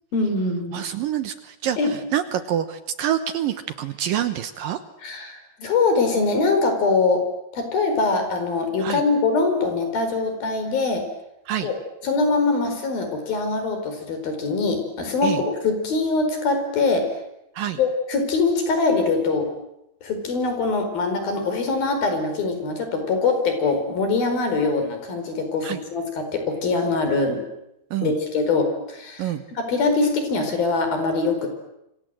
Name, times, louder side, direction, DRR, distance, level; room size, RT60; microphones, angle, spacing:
voice 1, 0.1-0.8 1.8-1.9 5.0-7.2 7.5-11.0 11.6-11.7 12.0-17.1 17.8-19.5 20.0-27.4 28.0-31.5, left 3 dB, 60° left, 6 dB, 6.4 m, -23 dB
voice 2, 0.7-1.8 2.1-4.8 8.8-9.0 11.5-11.7 15.2-15.4 17.6-17.8 25.6-25.8 27.9-28.1 29.2-29.4, right 11 dB, 70° right, 10 dB, 2.5 m, -26 dB
27.5 x 26.0 x 7.8 m, 0.85 s
omnidirectional pair, 4.7 m